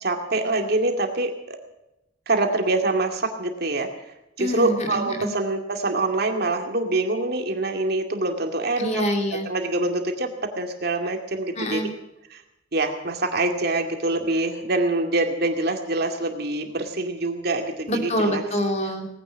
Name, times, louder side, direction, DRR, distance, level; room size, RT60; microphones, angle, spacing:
voice 1, 0.0-1.6 2.3-3.9 4.4-9.0 9.4-10.3 10.6-11.9 12.3-12.4 12.7-18.4, right 2 dB, 55° right, 4 dB, 2.2 m, -25 dB
voice 2, 4.4-5.3 8.8-9.4 11.6-11.9 17.9-19.1, equal, 35° left, 4 dB, 2.8 m, -26 dB
18.5 x 10.0 x 7.4 m, 0.90 s
head